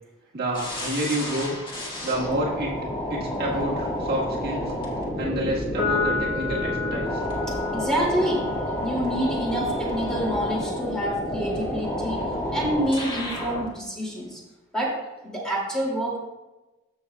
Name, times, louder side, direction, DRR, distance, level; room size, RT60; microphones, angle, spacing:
voice 1, 0.3-1.6 2.0-2.8 3.1-4.7 5.2-7.2, right 1 dB, 50° right, -4 dB, 1.6 m, -29 dB
sound 1, 0.5-13.7, equal, 25° left, 1.8 m, -30 dB
Piano, 5.8-12.5, left 4 dB, 55° left, 2.6 m, -33 dB
voice 2, 7.5-8.5 8.8-14.4 14.7-15.0 15.2-16.2, equal, 5° left, -4 dB, 2.3 m, -27 dB
14.5 x 6.4 x 2.3 m, 1.0 s
head